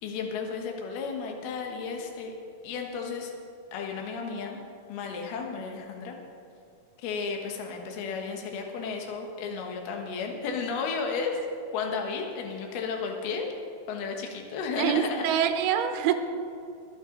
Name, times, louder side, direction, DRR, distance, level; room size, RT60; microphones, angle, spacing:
voice 1, 0.0-2.3 2.6-3.3 3.7-4.6 4.9-6.2 7.0-11.4 11.7-13.5 13.9-15.2, left 5 dB, 70° left, 2 dB, 3.1 m, -33 dB
voice 2, 14.8-16.1, right 9 dB, 80° right, 7 dB, 2.5 m, -25 dB
23.5 x 8.8 x 3.9 m, 2.5 s
omnidirectional pair, 5.1 m